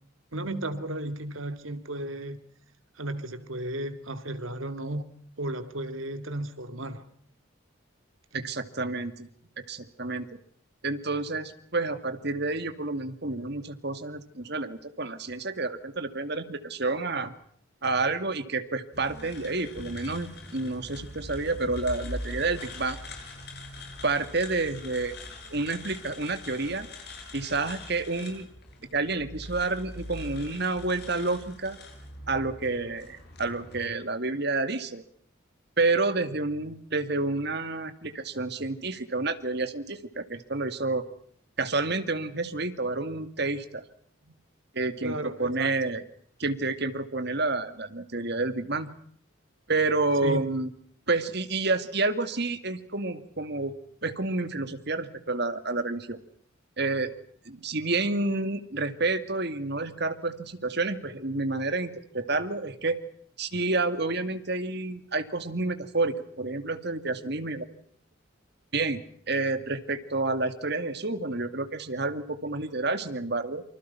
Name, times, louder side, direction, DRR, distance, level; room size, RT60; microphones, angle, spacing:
voice 1, 0.3-2.4 3.0-5.0 5.4-7.0 8.3-8.5 45.0-45.7 50.2-50.5, right 1 dB, 75° right, 2.7 m, -34 dB
voice 2, 8.3-9.3 9.6-10.4 10.8-17.3 17.8-23.0 24.0-25.1 25.5-26.9 27.3-28.5 28.9-31.8 32.3-35.0 35.8-41.1 41.6-43.8 44.3-44.4 44.7-46.0 46.4-48.9 49.7-50.7 51.1-53.7 54.0-56.2 56.8-57.1 57.5-63.0 63.4-67.7 68.7-69.0 69.3-73.6, right 3 dB, 55° right, 2.3 m, -29 dB
sound 1, 18.9-33.9, left 1 dB, 50° left, 7.8 m, -43 dB
28.0 x 25.5 x 5.8 m
head